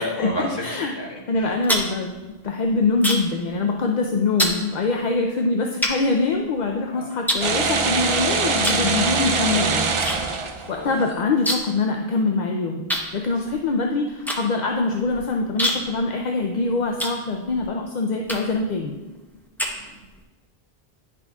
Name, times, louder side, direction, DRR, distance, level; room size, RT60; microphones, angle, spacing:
voice 1, 0.0-0.6 0.9-1.6 6.9-7.1 10.4-10.9 19.7-20.0, left 1 dB, 25° left, -4 dB, 1.5 m, -32 dB
voice 2, 0.6-0.9 1.3-2.1 2.4-9.9 10.7-12.8 13.1-18.9, left 3 dB, 55° left, 2 dB, 0.5 m, -24 dB
sound 1, 1.3-3.4 3.7-4.0 4.4-4.6 5.2-5.3 5.8-6.8 7.3-8.1 8.6-8.9 9.2-10.2 10.4-10.5 10.8-11.8 12.1-12.2 12.9-17.7 18.2-18.7 19.1-20.2, equal, ahead, 0.6 m, -27 dB
sound 2, 7.4-11.0, right 4 dB, 55° right, 0.3 m, -23 dB
10.0 x 6.0 x 2.3 m, 1.2 s
omnidirectional pair, 1.1 m